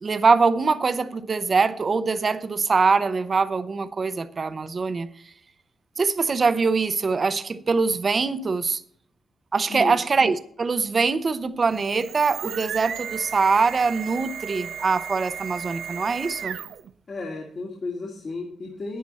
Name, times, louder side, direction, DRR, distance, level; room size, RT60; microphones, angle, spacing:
voice 1, 0.0-5.1 6.0-8.8 9.5-16.6, right 4 dB, 45° right, 13 dB, 0.8 m, -23 dB
sound 1, 11.6-16.9, right 8 dB, 75° right, 0.5 m, -35 dB
voice 2, 17.1-19.0, left 3 dB, 55° left, -2 dB, 2.3 m, -33 dB
10.5 x 9.4 x 4.2 m, 0.64 s
cardioid pair, 75°, 0 cm